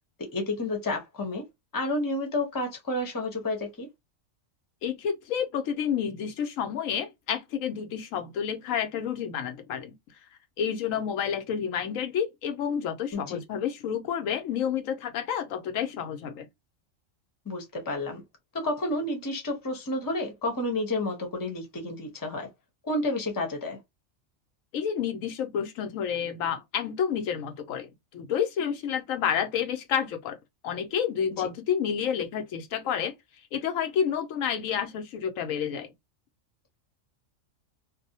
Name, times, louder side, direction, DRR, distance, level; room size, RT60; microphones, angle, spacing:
voice 1, 0.2-1.4 1.7-3.9 13.1-13.4 17.5-18.2 18.5-22.5 22.8-23.8 31.4-31.5, left 2 dB, 20° left, 0.7 m, -30 dB
voice 2, 4.8-9.9 10.6-16.5 24.7-30.4 30.6-33.1 33.5-35.9, left 8 dB, 90° left, 1.1 m, -29 dB
2.6 x 2.1 x 2.7 m
omnidirectional pair, 1.3 m